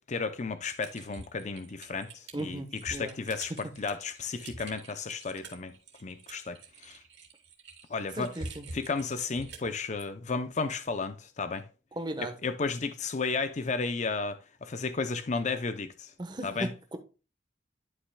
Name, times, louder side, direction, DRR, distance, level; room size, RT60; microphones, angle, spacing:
voice 1, 0.1-5.7 6.0-7.0 7.9-8.3 8.7-11.7 12.2-16.1 16.4-16.7, left 4 dB, 40° left, 0.5 m, -33 dB
Typing, 0.8-9.7, right 2 dB, 70° right, 2.7 m, -46 dB
voice 2, 2.3-3.2 8.2-8.7 11.9-12.3 16.2-17.0, right 1 dB, 25° right, 1.0 m, -37 dB
11.5 x 5.6 x 2.2 m
head